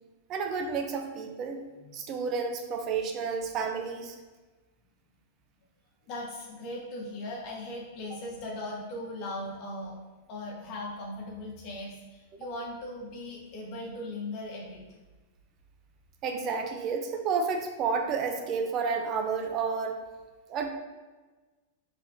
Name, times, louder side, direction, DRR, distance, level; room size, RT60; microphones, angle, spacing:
voice 1, 0.3-1.6 1.9-4.2 8.1-8.2 12.4-12.5 16.2-20.0 20.5-20.7, right 5 dB, 40° right, 4 dB, 0.5 m, -31 dB
voice 2, 1.8-2.3 6.1-10.0 10.3-14.8, left 1 dB, 50° left, -3 dB, 1.3 m, -39 dB
4.8 x 3.5 x 2.7 m, 1.3 s
hypercardioid pair, 115°, 0 cm